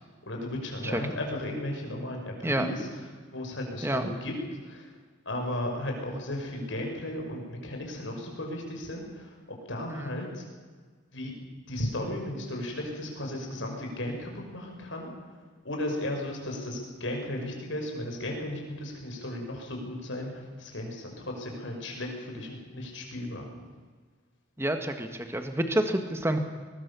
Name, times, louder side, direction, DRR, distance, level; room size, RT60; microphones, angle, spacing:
voice 1, 0.2-4.4 4.6-4.9 5.3-10.4 11.1-11.3 11.7-15.4 15.6-23.5, left 1 dB, 75° left, 1 dB, 5.8 m, -35 dB
voice 2, 24.6-26.4, right 1 dB, 15° right, 6 dB, 1.7 m, -28 dB
21.5 x 20.0 x 7.0 m, 1.5 s
head